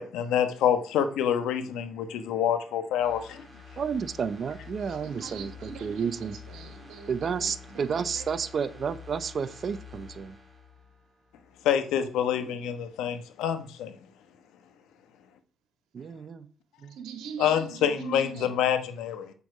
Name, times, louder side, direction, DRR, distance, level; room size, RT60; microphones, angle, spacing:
voice 1, 0.0-3.4 11.6-13.9 17.4-19.3, left 9 dB, 90° left, 1.2 m, -27 dB
sound 1, 3.0-11.7 12.0-12.1, left 5 dB, 10° right, 3.5 m, -48 dB
voice 2, 3.8-6.4 7.1-10.4 15.9-16.5 16.8-17.0, right 6 dB, 50° right, 0.8 m, -31 dB
voice 3, 4.8-8.5 16.9-18.7, right 6 dB, 90° right, 2.0 m, -43 dB
7.3 x 7.0 x 4.9 m
cardioid pair, 90°, 0 cm